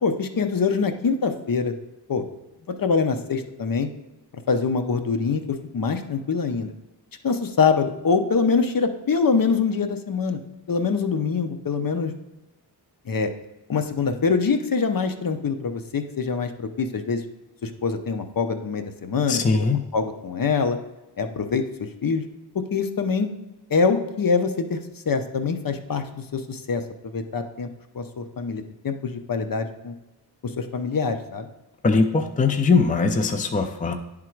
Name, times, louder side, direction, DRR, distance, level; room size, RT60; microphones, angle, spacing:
voice 1, 0.0-1.7 2.1-2.2 2.7-3.9 4.5-6.7 7.2-10.4 10.7-12.1 13.1-13.3 13.7-17.2 17.6-19.4 19.7-20.8 21.2-21.6 22.0-22.2 22.5-23.3 23.7-24.8 25.1-27.7 27.9-29.9 30.4-31.5, left 5 dB, 55° left, 7 dB, 0.7 m, -24 dB
voice 2, 19.3-19.8 31.8-33.9, left 4 dB, 20° left, 6 dB, 0.4 m, -21 dB
10.0 x 3.7 x 4.5 m, 1.0 s
wide cardioid pair, 120°, 41 cm